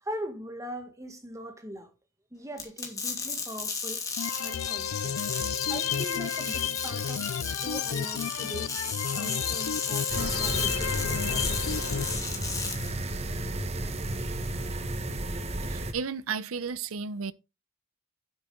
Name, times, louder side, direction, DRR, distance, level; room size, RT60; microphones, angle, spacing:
voice 1, 0.0-1.9 2.3-4.1 4.4-5.2 5.7-7.4 7.6-8.8 9.1-10.1 10.4-12.2, equal, 15° right, 1.7 m, -41 dB
sound 1, 2.6-12.9, left 4 dB, 15° left, 2.7 m, -34 dB
sound 2, 4.2-12.2, left 8 dB, 85° left, 0.4 m, -32 dB
sound 3, 10.1-15.9, right 1 dB, 30° right, 1.1 m, -33 dB
voice 2, 15.7-17.3, right 5 dB, 80° right, 0.7 m, -33 dB
9.6 x 8.0 x 3.8 m
head